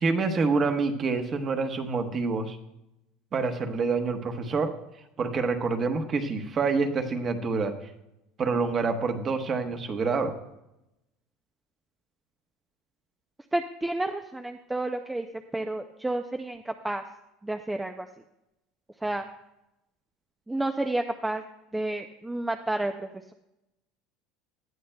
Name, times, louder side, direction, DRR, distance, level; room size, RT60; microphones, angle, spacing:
voice 1, 0.0-2.6 3.3-4.7 5.2-7.7 8.4-10.3, right 4 dB, 25° right, 6 dB, 1.1 m, -27 dB
voice 2, 13.5-15.3 15.5-17.0 17.4-18.1 19.0-19.3 20.5-21.4 21.7-23.3, right 2 dB, 5° right, 6 dB, 0.4 m, -30 dB
18.5 x 13.0 x 2.2 m, 0.90 s
cardioid pair, 170°, 0 cm